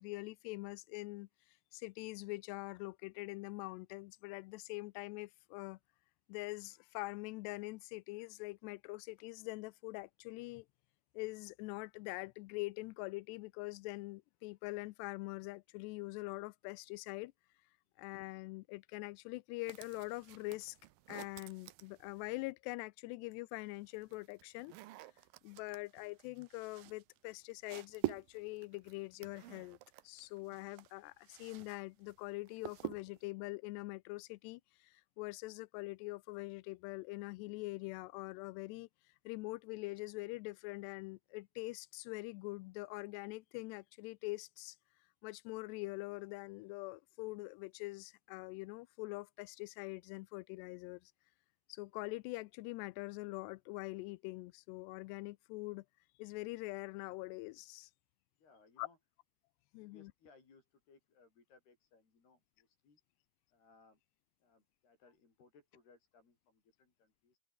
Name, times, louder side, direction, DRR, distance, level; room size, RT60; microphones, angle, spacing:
voice 1, 0.0-5.8 6.3-10.7 11.1-17.3 18.0-20.8 21.1-24.7 25.4-29.8 30.0-38.9 39.3-44.8 45.2-51.1 51.7-55.9 56.2-57.9 58.8-58.9 59.7-60.1, left 22 dB, 80° left, 2.5 m, -44 dB
sound 1, 19.7-22.5 23.5-31.8 32.0-33.3, right 16 dB, 85° right, 2.0 m, -47 dB
voice 2, 58.4-59.0 59.8-63.0 63.5-64.0 64.4-67.4, left 4 dB, 60° left, 8.5 m, -66 dB
open air
omnidirectional pair, 5.3 m